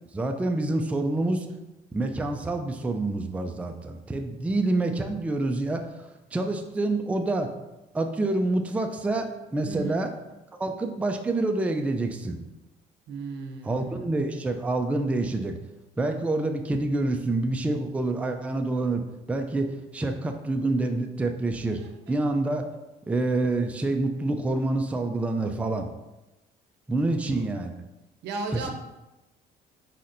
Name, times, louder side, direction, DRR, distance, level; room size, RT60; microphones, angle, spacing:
voice 1, 0.1-1.5 1.9-7.5 7.9-10.1 10.6-12.4 13.6-15.6 16.0-19.0 19.3-21.8 22.1-22.7 23.1-25.9 26.9-27.7 28.5-28.7, right 2 dB, 10° right, 5 dB, 0.3 m, -27 dB
voice 2, 9.6-10.0 13.1-14.0 21.8-22.1 27.1-27.6 28.2-28.7, right 4 dB, 80° right, 3 dB, 0.7 m, -36 dB
4.2 x 4.1 x 2.6 m, 1.0 s
cardioid pair, 110°, 17 cm